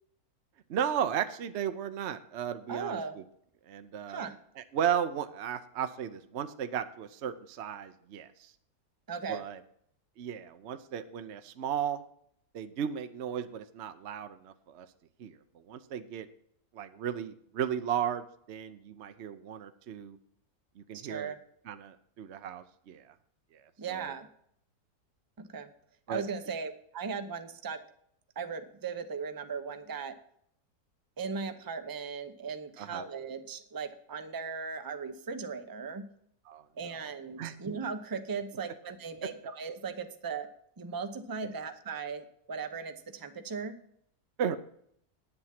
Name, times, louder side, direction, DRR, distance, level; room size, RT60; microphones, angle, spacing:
voice 1, 0.7-3.2 3.7-4.3 4.6-8.5 9.3-9.6 10.2-12.0 12.5-14.9 15.2-16.3 16.7-20.2 20.8-21.3 21.7-23.1 23.9-24.1 26.1-26.2 32.8-33.0 36.5-36.6 36.9-37.1 37.4-37.5 41.4-41.5 44.4-44.6, right 9 dB, 55° right, 9 dB, 0.8 m, -35 dB
voice 2, 2.7-3.1 4.1-4.4 9.1-9.4 21.0-21.4 23.8-24.3 25.4-25.7 26.1-27.8 28.4-30.1 31.2-36.1 36.8-40.5 40.8-43.8, right 5 dB, 25° right, 8 dB, 0.5 m, -38 dB
9.7 x 7.8 x 5.9 m, 0.68 s
omnidirectional pair, 1.7 m